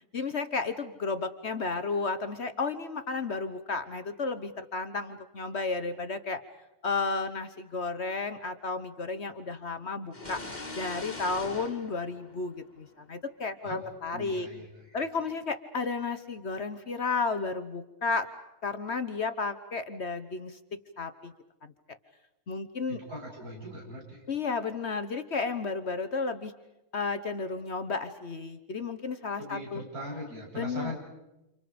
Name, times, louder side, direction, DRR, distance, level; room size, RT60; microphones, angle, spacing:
voice 1, 0.1-6.4 6.8-10.4 10.8-14.5 14.9-18.3 18.6-21.3 22.5-23.0 24.3-26.5 26.9-29.8 30.6-30.9, left 4 dB, 45° left, 10 dB, 1.2 m, -33 dB
sound 1, 10.1-12.9, left 2 dB, 30° left, 2.2 m, -41 dB
voice 2, 14.1-15.1 22.9-24.2 29.3-30.9, equal, 75° right, -3 dB, 8.5 m, -40 dB
30.0 x 28.5 x 5.1 m, 0.95 s
omnidirectional pair, 1.6 m